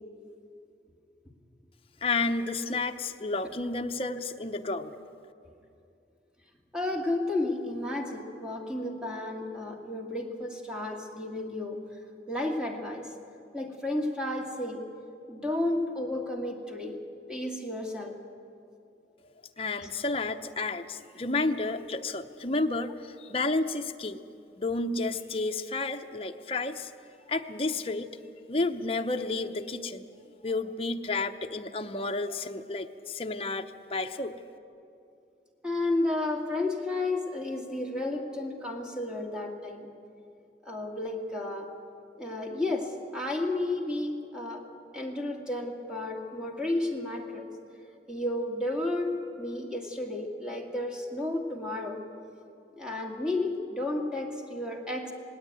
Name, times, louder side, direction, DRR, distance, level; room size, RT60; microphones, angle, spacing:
voice 1, 2.0-5.0 19.6-24.2 24.6-26.9 27.3-28.1 28.5-30.1 30.4-34.3, left 3 dB, 35° left, 5 dB, 0.8 m, -31 dB
voice 2, 6.7-12.0 12.3-13.1 13.5-14.8 15.3-17.0 17.3-18.2 35.6-39.9 40.6-41.7 42.2-44.6 44.9-47.5 48.1-52.0 52.8-55.1, left 2 dB, 5° right, 1 dB, 2.0 m, -32 dB
18.5 x 18.5 x 9.2 m, 2.6 s
head